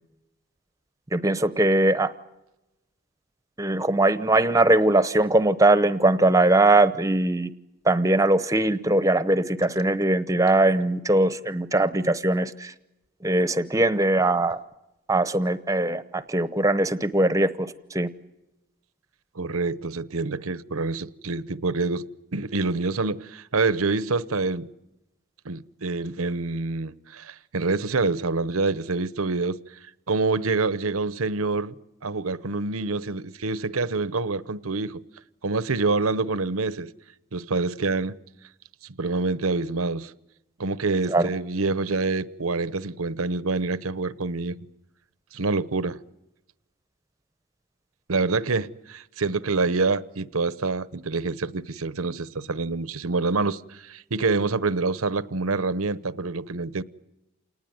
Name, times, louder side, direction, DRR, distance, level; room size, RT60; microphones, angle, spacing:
voice 1, 1.1-2.1 3.6-7.5 7.8-12.7 13.2-14.6 15.1-18.1 41.1-41.3, right 2 dB, 15° right, 0.8 m, -21 dB
voice 2, 19.4-24.7 25.4-29.6 30.1-31.7 32.0-35.0 35.4-36.9 37.3-38.2 39.0-40.1 40.6-44.6 45.3-46.0 48.1-56.8, right 3 dB, 85° right, 0.9 m, -26 dB
28.0 x 19.5 x 9.4 m
head